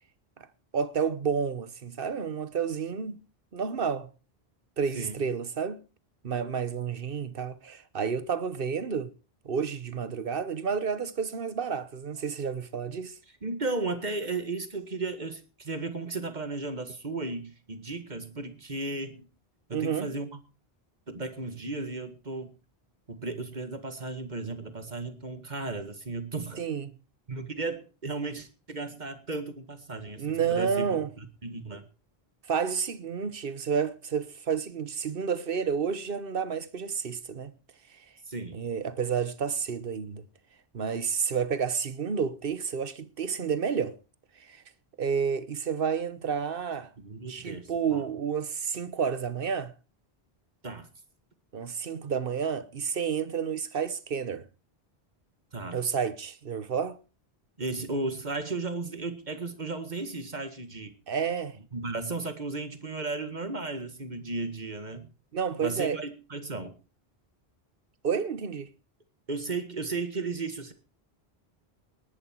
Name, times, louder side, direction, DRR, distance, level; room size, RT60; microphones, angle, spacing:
voice 1, 0.7-3.2 3.5-4.1 4.8-5.8 6.2-9.1 9.4-13.1 19.7-20.1 26.6-26.9 30.2-31.1 32.5-37.5 38.5-40.2 40.7-44.0 44.4-44.6 45.0-46.9 47.3-49.7 51.5-54.5 55.7-57.0 61.1-61.6 65.3-66.0 68.0-68.7, right 6 dB, 60° right, 1.3 m, -30 dB
voice 2, 13.4-19.3 19.7-20.4 21.1-22.5 23.1-26.6 27.3-30.9 31.2-31.8 38.3-38.6 47.0-48.0 50.6-50.9 55.5-55.8 57.6-60.9 61.7-65.1 65.6-66.8 69.3-70.7, right 3 dB, 45° right, 2.0 m, -35 dB
18.5 x 11.0 x 4.6 m
omnidirectional pair, 1.0 m